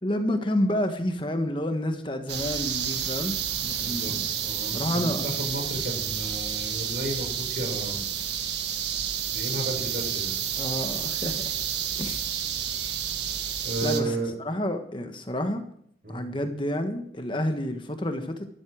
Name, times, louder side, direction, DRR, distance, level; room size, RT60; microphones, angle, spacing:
voice 1, 0.0-3.4 3.6-4.3 4.6-5.3 10.6-11.6 12.0-12.2 13.8-15.6 16.1-18.5, left 1 dB, 30° left, 7 dB, 1.3 m, -29 dB
sound 1, 2.3-14.0, right 9 dB, 85° right, 1.6 m, -30 dB
voice 2, 3.8-4.2 4.4-8.0 9.3-10.4 13.6-14.3 16.0-16.4, right 1 dB, 55° right, 3 dB, 5.2 m, -33 dB
13.5 x 12.5 x 6.3 m, 0.66 s
head